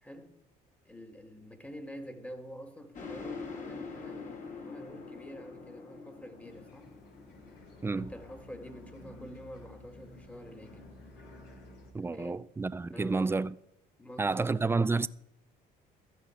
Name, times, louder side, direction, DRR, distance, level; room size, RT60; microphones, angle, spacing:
voice 1, 0.0-0.3 0.8-6.9 7.9-10.9 12.1-12.5 12.9-13.4 14.0-14.6, equal, 10° left, 1.7 m, -47 dB
sound 1, 2.9-9.6, left 4 dB, 50° left, 3.1 m, -45 dB
sound 2, 6.4-11.9, left 2 dB, 85° left, 3.0 m, -52 dB
voice 2, 11.9-13.5 14.2-15.1, right 3 dB, 15° right, 0.4 m, -30 dB
15.0 x 5.8 x 8.2 m
cardioid pair, 110°, 17 cm